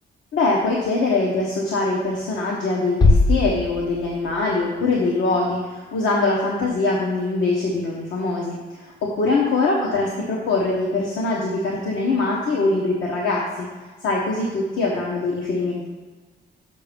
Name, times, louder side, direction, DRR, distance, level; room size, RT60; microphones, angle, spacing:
voice 1, 0.3-13.7 14.0-15.8, left 3 dB, 85° left, -2 dB, 1.3 m, -23 dB
sound 1, 3.0-4.9, left 2 dB, 25° left, 0.4 m, -20 dB
6.8 x 6.8 x 5.3 m, 1.3 s
wide cardioid pair, 175°, 20 cm